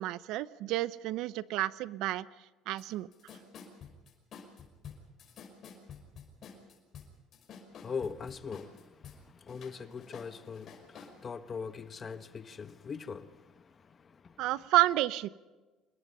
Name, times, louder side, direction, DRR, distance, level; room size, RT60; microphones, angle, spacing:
voice 1, 0.0-2.3 2.7-3.1 14.4-15.3, right 16 dB, 75° right, 0.8 m, -30 dB
sound 1, 2.8-2.9 3.1-9.2 9.5-11.1, left 6 dB, 50° left, 5.6 m, -50 dB
voice 2, 7.7-14.5, left 5 dB, 30° left, 1.1 m, -42 dB
26.5 x 22.0 x 5.6 m
cardioid pair, 115°, 0 cm